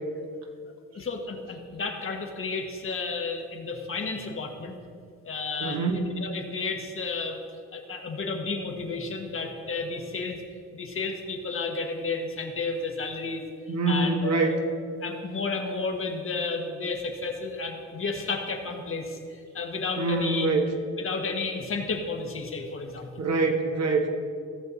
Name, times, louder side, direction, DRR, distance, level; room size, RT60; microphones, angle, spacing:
voice 1, 0.9-4.8 5.2-7.4 7.7-10.4 10.7-14.6 15.0-20.5 21.0-23.3, left 4 dB, 45° left, 2 dB, 1.7 m, -32 dB
voice 2, 5.6-6.1 13.7-14.5 20.0-20.7 23.2-24.1, right 3 dB, 60° right, 2 dB, 1.6 m, -25 dB
17.0 x 6.8 x 4.1 m, 2.3 s
cardioid pair, 90°, 30 cm